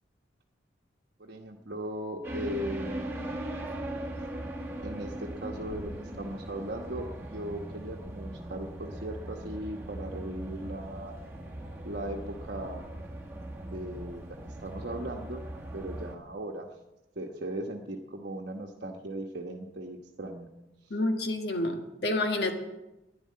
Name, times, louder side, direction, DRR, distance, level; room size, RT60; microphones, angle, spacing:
voice 1, 1.2-3.4 4.8-11.1 11.8-12.9 13.6-14.4 14.6-15.4 15.7-16.7 17.1-20.5 20.9-21.0, right 1 dB, 55° right, -1 dB, 1.2 m, -38 dB
sound 1, 2.2-16.1, right 1 dB, 15° right, 1.8 m, -39 dB
voice 2, 20.9-22.5, left 2 dB, 60° left, 4 dB, 1.7 m, -29 dB
11.5 x 11.0 x 8.6 m, 0.99 s
head